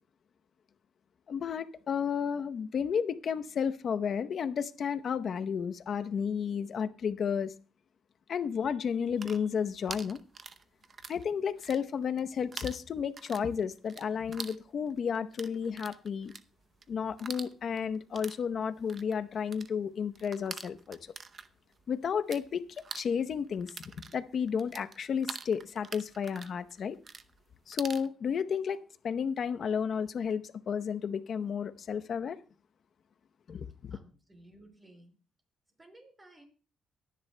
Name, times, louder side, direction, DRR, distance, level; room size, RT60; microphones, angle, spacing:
voice 1, 1.3-7.5 8.3-10.2 11.1-16.3 16.9-21.0 21.9-22.6 22.9-23.7 24.1-27.0 27.7-28.8 29.0-32.4 33.5-34.0, left 7 dB, 55° left, 0.8 m, -32 dB
sound 1, 9.0-11.2 11.5-12.2 12.5-22.4 22.7-28.1, right 5 dB, 40° right, 0.7 m, -45 dB
voice 2, 33.9-35.2 35.7-36.5, right 1 dB, 20° right, 4.9 m, -56 dB
23.5 x 10.0 x 2.2 m
cardioid pair, 90°, 0 cm